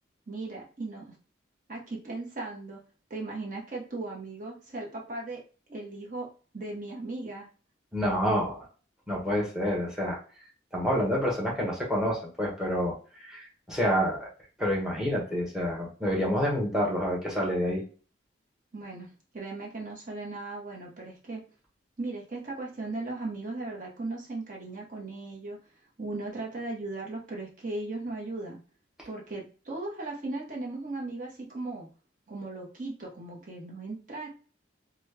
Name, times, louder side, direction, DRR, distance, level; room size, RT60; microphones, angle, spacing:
voice 1, 0.3-1.1 1.7-2.8 3.1-5.4 5.7-6.3 6.5-7.5 18.7-19.1 19.3-21.4 22.0-25.6 26.0-28.6 29.0-31.9 32.3-34.3, right 2 dB, 45° right, -2 dB, 1.0 m, -37 dB
voice 2, 7.9-8.7 9.1-10.2 10.7-14.3 14.6-17.8, equal, 5° right, -3 dB, 1.0 m, -28 dB
3.0 x 2.3 x 3.3 m, 0.38 s
head